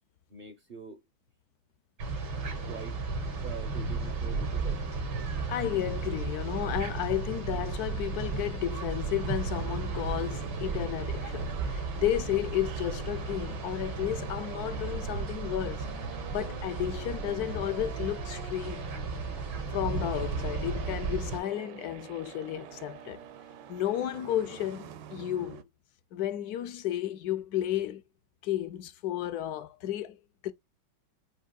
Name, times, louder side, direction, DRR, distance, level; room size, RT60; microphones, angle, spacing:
voice 1, 0.3-1.0 2.7-3.0 3.4-4.8, right 5 dB, 55° right, 0.5 m, -44 dB
sound 1, 2.0-21.4, right 4 dB, 85° right, 2.5 m, -34 dB
voice 2, 5.5-15.9 16.3-18.9 19.7-23.3 23.7-25.7 26.1-28.0 28.4-30.2 30.4-30.5, left 12 dB, 70° left, 0.9 m, -33 dB
sound 2, 8.7-25.6, right 9 dB, 70° right, 1.3 m, -47 dB
7.5 x 2.8 x 2.3 m
omnidirectional pair, 2.1 m